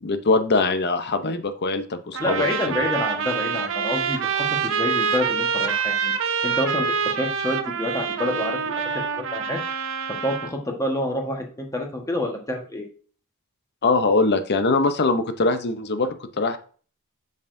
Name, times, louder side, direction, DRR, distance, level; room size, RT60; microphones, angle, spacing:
voice 1, 0.0-2.8 13.8-16.6, left 3 dB, 50° left, 10 dB, 0.7 m, -22 dB
sound 1, 2.1-10.5, right 6 dB, 60° right, 0.6 m, -26 dB
voice 2, 2.2-6.1 6.4-9.6 10.2-12.9, left 1 dB, 15° left, 2 dB, 1.3 m, -28 dB
7.0 x 6.5 x 2.6 m, 0.42 s
head